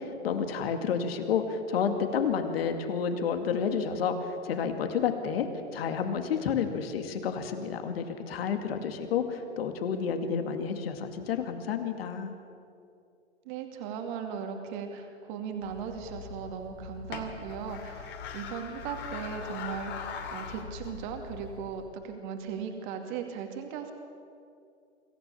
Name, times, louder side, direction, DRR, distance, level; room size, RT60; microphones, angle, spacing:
voice 1, 0.0-5.5 5.7-12.3, left 6 dB, 60° left, 7 dB, 2.3 m, -30 dB
voice 2, 13.5-23.9, right 6 dB, 45° right, 4 dB, 2.5 m, -38 dB
sound 1, 15.6-21.9, left 6 dB, 30° left, 2.5 m, -41 dB
25.5 x 15.5 x 7.1 m, 2.5 s
figure-of-eight pair, 110°, 34 cm